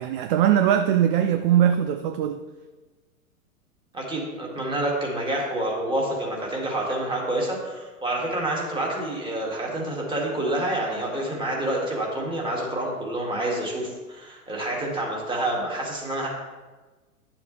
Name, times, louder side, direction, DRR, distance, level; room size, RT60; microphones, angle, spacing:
voice 1, 0.0-2.4, right 10 dB, 40° right, 0.5 m, -21 dB
voice 2, 3.9-16.3, right 1 dB, 10° right, 2.2 m, -28 dB
10.5 x 7.2 x 3.3 m
hypercardioid pair, 110°, 44 cm